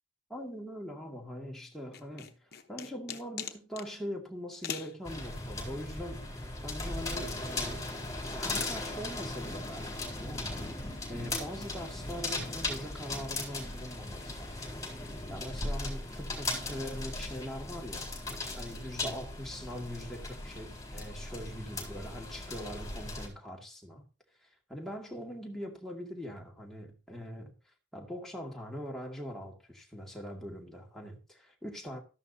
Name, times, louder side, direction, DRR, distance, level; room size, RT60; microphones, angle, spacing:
voice 1, 0.3-7.9 8.3-10.7 11.1-14.8 15.3-18.1 18.5-24.0 24.4-32.0, equal, ahead, 2.2 m, -42 dB
sound 1, 1.9-3.9 4.6-4.9, left 8 dB, 50° left, 1.0 m, -40 dB
sound 2, 5.1-23.3, left 2 dB, 15° left, 4.1 m, -38 dB
13.5 x 11.0 x 2.8 m
head